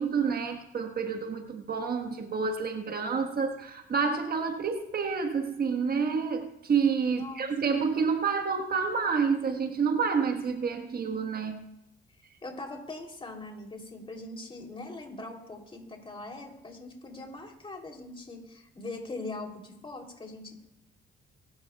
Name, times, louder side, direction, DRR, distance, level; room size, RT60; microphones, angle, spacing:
voice 1, 0.0-11.6, right 5 dB, 50° right, 5 dB, 1.4 m, -29 dB
voice 2, 7.1-7.5 12.4-20.6, left 2 dB, 25° left, 2 dB, 3.2 m, -41 dB
25.0 x 12.0 x 2.3 m, 0.87 s
cardioid pair, 90°, 20 cm